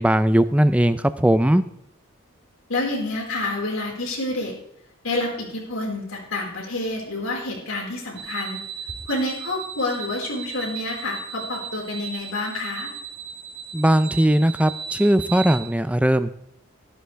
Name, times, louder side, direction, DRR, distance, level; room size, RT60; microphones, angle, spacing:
voice 1, 0.0-1.6 13.7-16.3, right 1 dB, 5° right, 12 dB, 0.5 m, -19 dB
voice 2, 2.7-4.5 5.0-8.6 9.1-12.9, left 2 dB, 90° left, -1 dB, 4.8 m, -28 dB
sound 1, 8.2-15.6, right 7 dB, 65° right, 2.5 m, -36 dB
14.0 x 12.5 x 3.4 m, 0.73 s
head